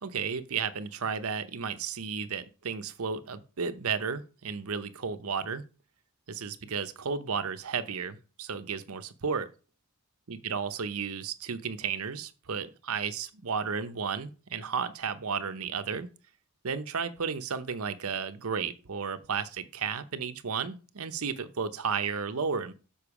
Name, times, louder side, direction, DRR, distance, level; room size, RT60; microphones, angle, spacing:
voice 1, 0.0-5.6 6.3-9.5 10.3-16.1 16.6-22.7, right 6 dB, 80° right, 0.8 m, -33 dB
7.0 x 5.4 x 4.8 m
head